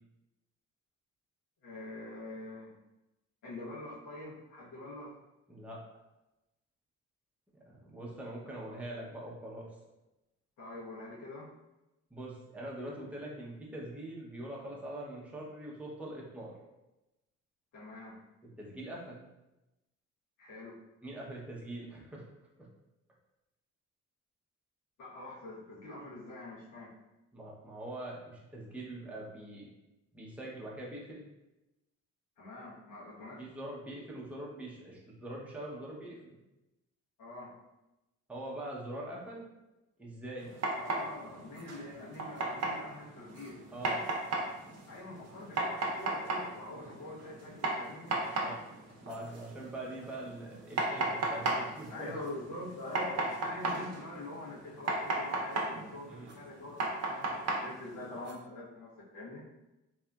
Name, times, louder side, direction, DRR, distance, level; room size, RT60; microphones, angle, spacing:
voice 1, 1.6-2.7 3.4-5.1 8.6-8.8 10.6-11.5 17.7-18.2 20.4-20.8 25.0-26.9 32.4-33.5 37.2-37.5 40.8-43.6 44.9-48.5 51.4-59.4, left 2 dB, 85° left, -7 dB, 1.1 m, -45 dB
voice 2, 5.5-5.8 7.7-9.7 12.1-16.5 18.6-19.2 21.0-22.3 22.6-22.7 27.3-29.7 30.1-31.3 33.4-36.2 38.3-39.5 40.0-40.5 43.7-44.1 46.8-46.9 48.4-52.1 56.0-56.3, right 1 dB, 5° right, -4 dB, 0.6 m, -43 dB
sound 1, 40.4-58.3, right 2 dB, 55° right, 0.6 m, -36 dB
2.8 x 2.4 x 2.2 m, 0.98 s
cardioid pair, 90°, 30 cm